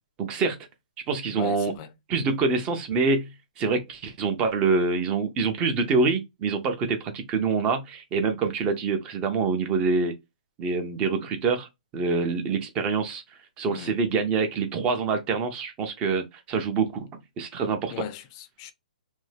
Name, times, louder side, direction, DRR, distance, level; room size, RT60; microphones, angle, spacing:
voice 1, 0.2-0.6 1.1-1.7 2.1-3.3 3.6-10.1 10.6-11.7 11.9-13.2 13.6-17.1 17.4-17.9, right 4 dB, 20° right, 0.6 m, -25 dB
voice 2, 1.4-1.9 13.7-14.0 17.9-18.7, left 9 dB, 30° left, 0.5 m, -39 dB
2.6 x 2.2 x 3.3 m
hypercardioid pair, 145°, 5 cm